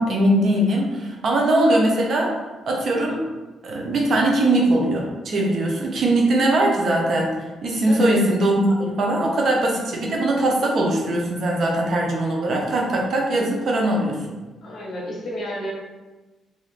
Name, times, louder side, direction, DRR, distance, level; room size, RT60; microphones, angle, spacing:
voice 1, 0.0-2.3 2.6-3.2 3.6-7.3 7.6-14.4, right 1 dB, 55° right, -1 dB, 0.6 m, -21 dB
voice 2, 7.9-8.2 14.6-15.7, equal, 50° left, -2 dB, 0.8 m, -31 dB
2.5 x 2.4 x 3.3 m, 1.2 s
cardioid pair, 90°, 0 cm